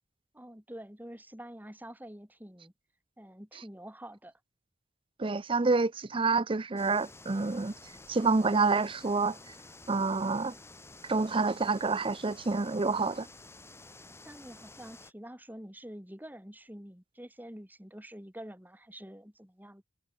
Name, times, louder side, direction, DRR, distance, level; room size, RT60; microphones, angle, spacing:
voice 1, 0.3-2.7 3.2-4.3 14.2-19.8, right 1 dB, 10° right, 3.6 m, -47 dB
voice 2, 5.2-7.7 8.1-9.5 9.9-10.5 11.0-13.3, right 3 dB, 30° right, 0.6 m, -28 dB
sound 1, 6.8-15.1, left 2 dB, 15° left, 2.6 m, -51 dB
head